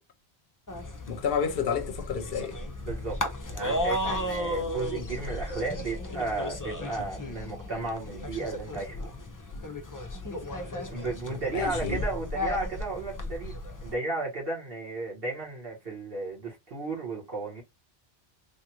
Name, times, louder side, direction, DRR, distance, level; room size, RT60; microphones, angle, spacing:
sound 1, 0.7-13.9, left 1 dB, 25° left, 0.4 m, -34 dB
voice 1, 1.1-2.6 11.5-12.0, left 6 dB, 70° left, 0.7 m, -30 dB
voice 2, 2.8-3.2 3.5-9.1 10.9-17.6, right 3 dB, 60° right, 1.6 m, -34 dB
3.4 x 2.4 x 2.9 m
omnidirectional pair, 1.1 m